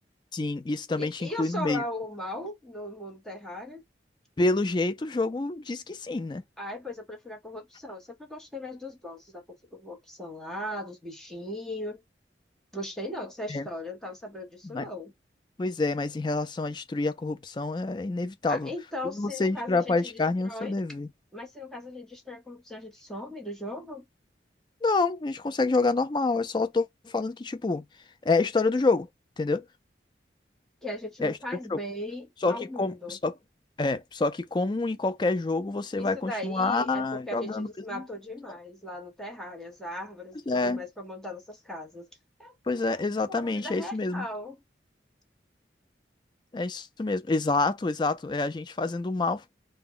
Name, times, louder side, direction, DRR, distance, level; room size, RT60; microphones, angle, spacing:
voice 1, 0.3-1.8 4.4-6.4 13.5-13.7 14.7-14.9 15.6-18.7 19.1-21.1 24.8-27.8 28.2-29.1 29.4-29.6 31.2-31.3 31.7-31.8 32.4-33.3 33.8-38.0 40.5-40.8 42.7-44.3 46.5-49.4, left 3 dB, 25° left, 0.4 m, -27 dB
voice 2, 1.0-3.8 6.6-9.4 9.7-12.0 12.7-15.1 18.5-20.7 21.3-24.0 30.8-33.2 36.0-42.1 42.4-42.6 43.3-44.6, left 1 dB, 5° left, 0.8 m, -38 dB
2.1 x 2.1 x 3.6 m
head